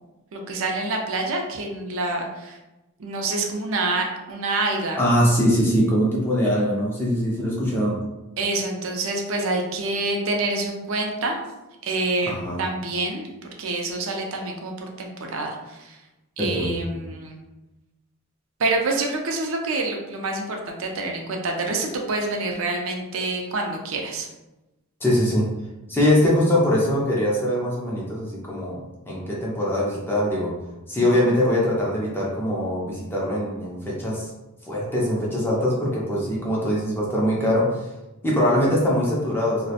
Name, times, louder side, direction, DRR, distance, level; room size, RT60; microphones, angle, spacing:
voice 1, 0.3-2.6 3.0-5.0 8.4-11.4 11.8-13.3 13.6-16.0 16.4-17.4 18.6-24.3 31.0-31.1, right 2 dB, 65° right, 2 dB, 0.4 m, -27 dB
voice 2, 5.0-8.0 12.3-12.6 16.4-16.7 25.0-25.5 25.9-28.8 29.1-30.5 30.9-34.3 34.7-37.9 38.2-39.7, equal, 10° left, -5 dB, 0.4 m, -22 dB
2.4 x 2.0 x 2.7 m, 1.0 s
head